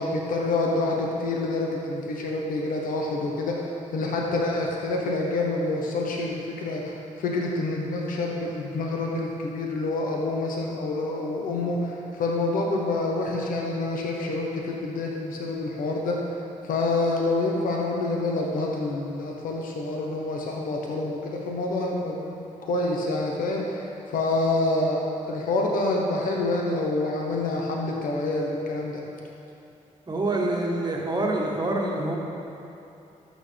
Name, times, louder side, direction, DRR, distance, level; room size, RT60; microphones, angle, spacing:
voice 1, 0.0-16.1 16.6-29.0, left 2 dB, 80° left, -1 dB, 1.1 m, -27 dB
voice 2, 30.1-32.1, right 2 dB, 30° right, -1 dB, 1.5 m, -26 dB
12.5 x 6.5 x 3.5 m, 2.8 s
cardioid pair, 70°, 14 cm